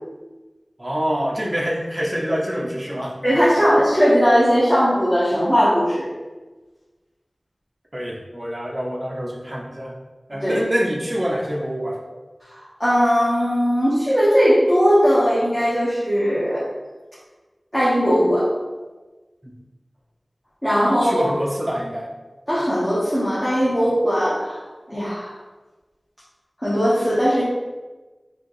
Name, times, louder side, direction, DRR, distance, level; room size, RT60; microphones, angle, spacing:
voice 1, 0.8-3.1 7.9-10.0 10.3-12.0 19.4-19.6 20.9-22.1, equal, 25° right, -2 dB, 0.8 m, -26 dB
voice 2, 3.2-6.1 10.4-10.6 12.4-16.6 17.7-18.5 20.6-21.3 22.5-24.6 24.9-25.3 26.6-27.4, equal, 15° left, -9 dB, 1.2 m, -18 dB
4.9 x 3.0 x 3.1 m, 1.2 s
wide cardioid pair, 55°, 0 cm